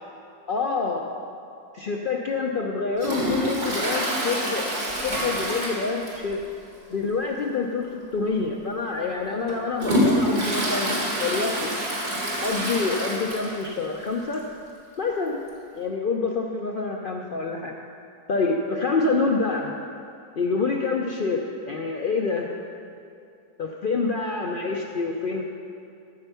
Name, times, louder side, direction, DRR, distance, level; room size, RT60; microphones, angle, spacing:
voice 1, 0.5-1.2 1.7-4.7 5.0-6.4 6.9-11.8 12.4-14.5 15.0-15.4 15.7-17.7 18.3-19.7 20.4-22.5 23.6-25.4, left 4 dB, 70° left, 1 dB, 0.5 m, -27 dB
Toilet flush, 3.0-6.4 6.7-6.8 7.2-7.3 8.2-8.3 8.8-13.7 14.1-14.2 14.3-14.4 15.5-15.6, equal, 75° right, 2.5 m, -26 dB
13.0 x 4.5 x 6.8 m, 2.5 s
omnidirectional pair, 1.6 m